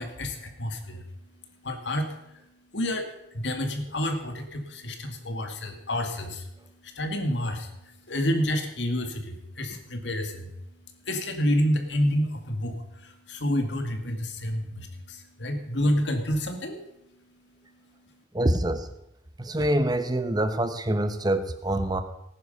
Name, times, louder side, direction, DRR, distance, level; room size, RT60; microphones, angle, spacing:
voice 1, 0.0-16.8 17.1-18.2, left 1 dB, 75° left, 6 dB, 2.0 m, -30 dB
voice 2, 18.3-18.9 19.4-22.0, right 1 dB, 20° right, 10 dB, 0.8 m, -25 dB
18.0 x 9.9 x 5.4 m, 0.83 s
head